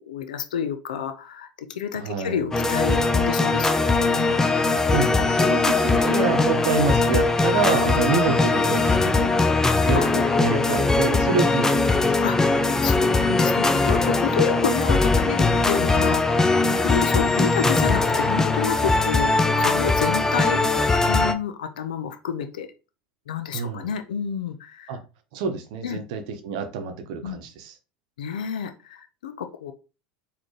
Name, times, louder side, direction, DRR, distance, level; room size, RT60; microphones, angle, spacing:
voice 1, 0.0-4.9 10.0-10.1 12.2-12.4 12.8-20.6 21.1-22.7 23.3-24.9 25.8-26.0 27.2-27.4 28.2-29.7, left 8 dB, 85° left, 0.5 m, -30 dB
voice 2, 1.9-2.5 4.9-9.3 9.9-12.2 23.5-23.9 24.9-25.0 25.3-27.7, right 5 dB, 65° right, 0.8 m, -27 dB
sound 1, 2.5-21.3, left 3 dB, 10° left, 0.5 m, -20 dB
4.1 x 2.8 x 3.1 m
hypercardioid pair, 85°, 4 cm